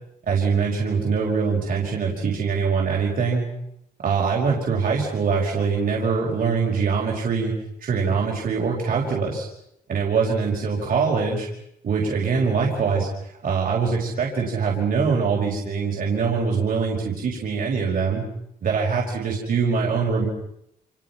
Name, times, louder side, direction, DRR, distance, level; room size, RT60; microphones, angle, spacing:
voice 1, 0.2-3.5 4.0-7.5 7.8-9.5 9.9-11.5 11.8-18.2 18.6-20.3, right 5 dB, 65° right, -1 dB, 5.3 m, -23 dB
29.5 x 28.0 x 5.9 m, 0.77 s
wide cardioid pair, 110°, 15 cm